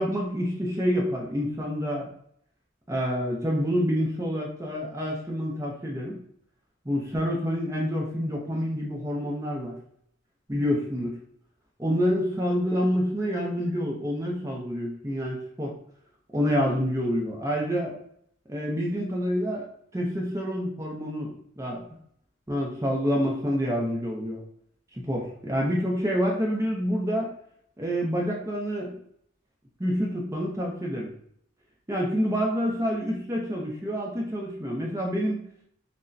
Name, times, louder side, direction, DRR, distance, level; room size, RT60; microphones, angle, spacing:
voice 1, 0.0-2.1 2.9-6.2 6.8-9.7 10.5-11.1 11.8-15.7 16.3-18.0 18.5-19.7 19.9-21.8 22.5-24.4 24.9-27.3 27.8-29.0 29.8-31.1 31.9-35.4, equal, 15° right, -2 dB, 0.6 m, -27 dB
6.0 x 2.1 x 2.6 m, 0.68 s
head